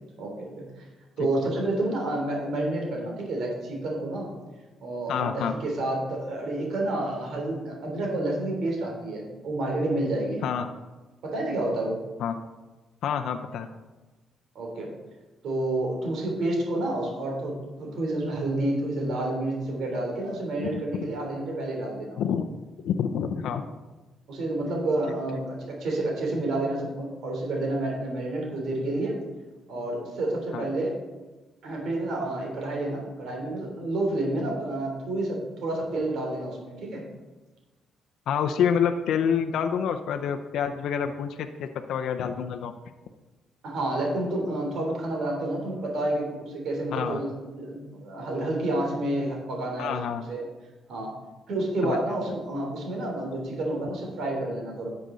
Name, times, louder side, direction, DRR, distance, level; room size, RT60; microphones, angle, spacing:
voice 1, 0.2-0.6 1.2-4.3 4.8-10.4 11.2-12.0 14.5-14.9 15.4-22.2 24.3-29.2 29.7-30.9 31.6-37.0 43.6-50.0 50.3-50.5 50.9-51.1 51.5-54.9, right 2 dB, 70° right, -1 dB, 3.4 m, -29 dB
voice 2, 5.1-5.5 10.4-10.7 12.2-12.4 13.0-13.7 20.6-20.8 22.2-22.5 22.8-23.7 30.5-30.6 38.3-42.7 46.9-47.2 49.8-50.2 51.8-52.0, left 7 dB, 80° left, 6 dB, 0.6 m, -27 dB
11.0 x 6.7 x 4.0 m, 1.2 s
cardioid pair, 90°, 0 cm